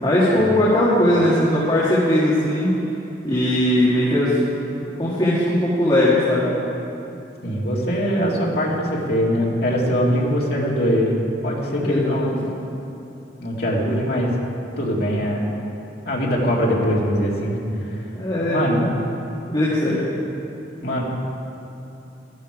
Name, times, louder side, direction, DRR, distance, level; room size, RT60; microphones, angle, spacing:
voice 1, 0.0-2.7 3.2-4.4 5.0-6.5 11.8-12.3 18.1-18.9 19.5-20.0, left 1 dB, 25° left, -9 dB, 1.9 m, -19 dB
voice 2, 7.4-12.4 13.4-14.3 14.8-15.4 16.0-17.6 17.9-18.0 18.4-18.8 20.8-21.0, equal, 55° left, -4 dB, 2.2 m, -22 dB
13.5 x 11.5 x 4.9 m, 2.9 s
head